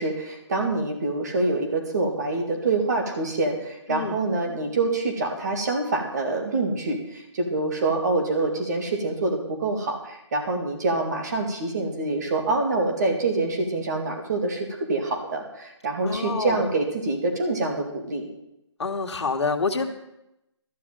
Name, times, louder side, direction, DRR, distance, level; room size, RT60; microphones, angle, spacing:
voice 1, 0.0-18.3, right 2 dB, 35° right, 3 dB, 2.3 m, -26 dB
voice 2, 3.9-4.2 16.0-16.6 18.8-19.9, left 4 dB, 65° left, 4 dB, 1.8 m, -27 dB
13.0 x 6.6 x 9.0 m, 0.85 s
hypercardioid pair, 165°, 16 cm